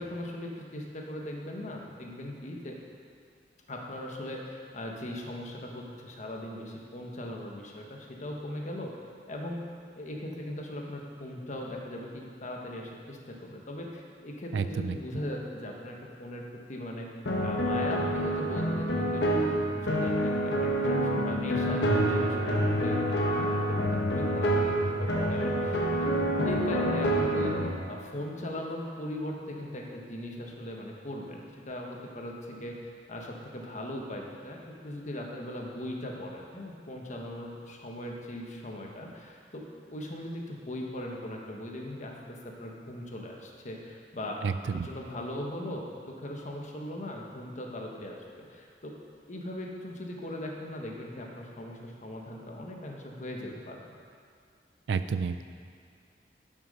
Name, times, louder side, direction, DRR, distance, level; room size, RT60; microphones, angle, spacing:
voice 1, 0.0-2.8 3.7-8.9 9.3-9.6 10.0-17.1 17.4-26.1 26.4-27.5 27.9-39.6 39.9-44.4 44.7-49.0 49.3-53.9, left 1 dB, 45° left, 0 dB, 1.2 m, -39 dB
voice 2, 14.5-15.0 44.4-44.9 54.9-55.4, right 5 dB, 80° right, 11 dB, 0.3 m, -30 dB
sound 1, 17.3-27.7, right 1 dB, 75° left, 1.4 m, -27 dB
11.5 x 6.5 x 5.3 m, 2.2 s
head